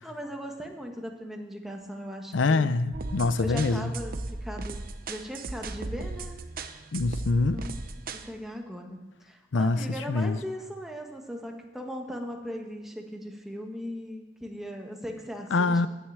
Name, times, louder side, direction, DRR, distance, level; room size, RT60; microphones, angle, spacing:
voice 1, 0.0-2.7 3.4-4.1 4.4-4.8 5.1-6.4 7.5-7.9 8.3-15.9, equal, ahead, 2 dB, 1.4 m, -38 dB
voice 2, 2.3-3.9 6.9-7.6 9.5-10.4 15.5-15.9, left 3 dB, 80° left, 14 dB, 0.6 m, -25 dB
sound 1, 2.9-8.3, right 3 dB, 50° right, 0.7 m, -37 dB
9.8 x 9.3 x 7.3 m, 1.1 s
head